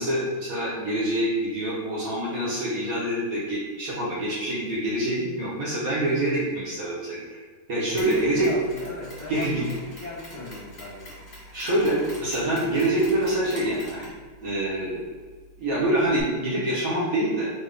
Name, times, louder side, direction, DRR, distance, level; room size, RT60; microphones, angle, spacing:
voice 1, 0.0-7.4 7.7-8.5 9.3-9.6 11.5-14.1 14.4-15.2 15.6-17.5, right 1 dB, 50° right, -7 dB, 1.4 m, -26 dB
voice 2, 7.9-11.1, left 2 dB, 10° left, -8 dB, 0.6 m, -37 dB
Mechanisms, 8.0-16.2, equal, 35° left, 1.7 m, -45 dB
4.1 x 3.0 x 3.6 m, 1.5 s
omnidirectional pair, 2.3 m